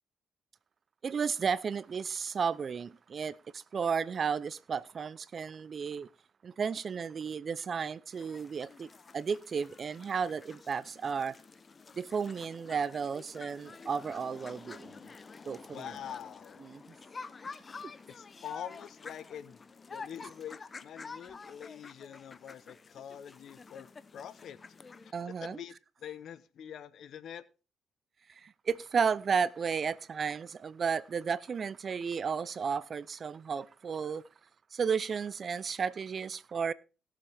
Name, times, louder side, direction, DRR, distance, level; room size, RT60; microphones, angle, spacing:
voice 1, 1.0-6.1 6.4-11.4 11.9-15.1 15.4-15.9 16.6-16.9 25.1-25.6 28.3-34.2 34.7-36.7, right 6 dB, 45° right, 0.6 m, -33 dB
sound 1, 8.1-25.1, left 4 dB, 35° left, 0.8 m, -49 dB
voice 2, 15.7-16.7 18.1-19.6 19.9-24.6 25.0-27.4, left 9 dB, 70° left, 0.9 m, -45 dB
18.0 x 7.4 x 3.4 m
cardioid pair, 90°, 0 cm